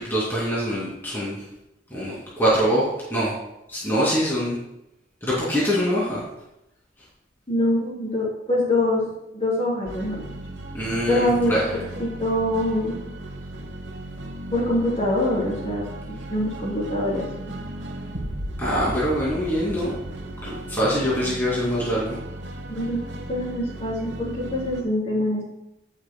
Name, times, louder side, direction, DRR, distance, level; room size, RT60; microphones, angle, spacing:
voice 1, 0.0-1.5 1.9-3.3 3.7-4.6 5.2-6.2 10.7-11.8 18.6-19.9 20.4-22.2, equal, 10° left, -7 dB, 2.5 m, -24 dB
voice 2, 7.5-9.1 9.3-10.2 11.1-12.9 14.5-17.5 22.7-23.0 23.3-25.4, left 1 dB, 35° left, -5 dB, 3.4 m, -24 dB
sound 1, 9.9-24.8, right 1 dB, 85° right, 1.1 m, -36 dB
16.0 x 6.5 x 2.2 m, 0.87 s
head